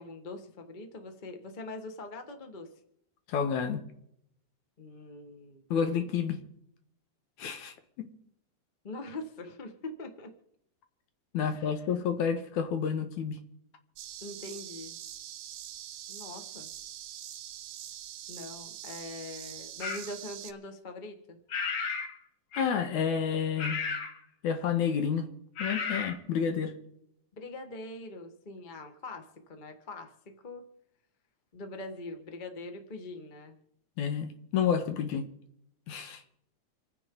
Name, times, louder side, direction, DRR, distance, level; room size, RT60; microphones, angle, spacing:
voice 1, 0.0-2.7 4.8-6.1 8.8-10.3 11.4-11.9 14.2-15.0 16.1-16.7 18.3-21.4 27.3-30.6 31.5-33.6, left 2 dB, 30° left, 0.9 m, -43 dB
voice 2, 3.3-3.8 5.7-6.4 7.4-8.1 11.3-13.4 22.5-23.8 24.4-25.3 25.6-26.8 34.0-35.3 35.9-36.2, left 7 dB, 75° left, 2.5 m, -30 dB
sound 1, 14.0-20.5, right 11 dB, 70° right, 2.0 m, -44 dB
sound 2, 19.8-20.1 21.5-22.1 22.5-22.8 23.6-24.2 25.6-26.1, left 5 dB, 55° left, 2.3 m, -33 dB
28.0 x 9.8 x 3.9 m
omnidirectional pair, 3.5 m